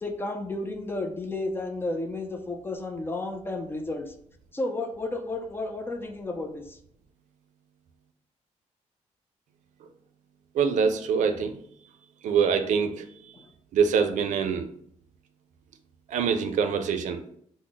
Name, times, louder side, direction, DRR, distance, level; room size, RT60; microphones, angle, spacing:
voice 1, 0.0-4.1 4.5-6.8 13.3-13.4, left 2 dB, 20° left, 5 dB, 0.3 m, -32 dB
voice 2, 10.5-11.6 12.2-13.0 13.7-14.7 16.1-17.2, right 6 dB, 85° right, 8 dB, 0.4 m, -24 dB
3.5 x 2.0 x 3.8 m, 0.67 s
wide cardioid pair, 155°, 12 cm